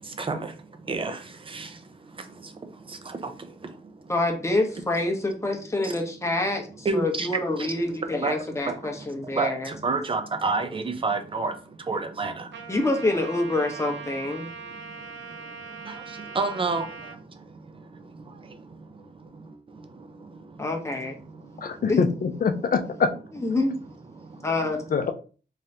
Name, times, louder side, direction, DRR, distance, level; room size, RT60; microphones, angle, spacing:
voice 1, 0.0-4.1 5.8-6.1 6.8-7.3 7.6-12.7 14.4-21.9 22.5-22.6 24.1-24.8, right 3 dB, 30° right, 0.5 m, -33 dB
voice 2, 4.1-9.7 12.7-14.5 20.6-21.2 21.9-22.0 23.4-23.8 24.4-24.8, left 2 dB, 15° left, 0.9 m, -26 dB
Trumpet, 12.5-17.2, right 5 dB, 80° right, 0.6 m, -41 dB
voice 3, 21.6-23.1 24.9-25.1, left 5 dB, 50° left, 0.6 m, -24 dB
3.6 x 3.3 x 2.8 m
wide cardioid pair, 130°, 18 cm